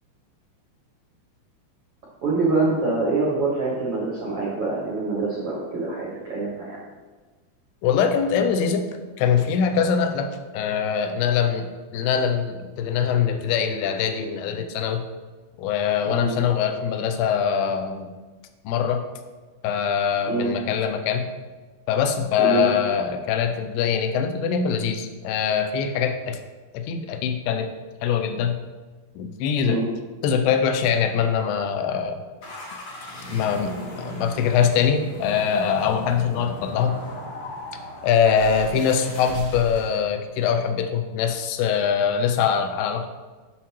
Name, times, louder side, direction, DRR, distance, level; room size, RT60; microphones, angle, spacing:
voice 1, 2.2-6.8 16.0-16.4 20.2-20.5 22.4-22.7 29.6-29.9, right 3 dB, 75° right, -5 dB, 1.3 m, -25 dB
voice 2, 7.8-8.9 9.2-15.0 15.6-18.1 18.7-19.0 19.6-21.3 21.9-26.4 26.7-27.7 28.0-28.6 29.2-29.8 30.2-32.2 33.3-36.9 38.0-43.1, left 7 dB, 85° left, 6 dB, 2.6 m, -23 dB
sound 1, 32.4-40.0, left 1 dB, 65° left, 1.5 m, -37 dB
7.4 x 5.8 x 2.9 m, 1.3 s
omnidirectional pair, 4.6 m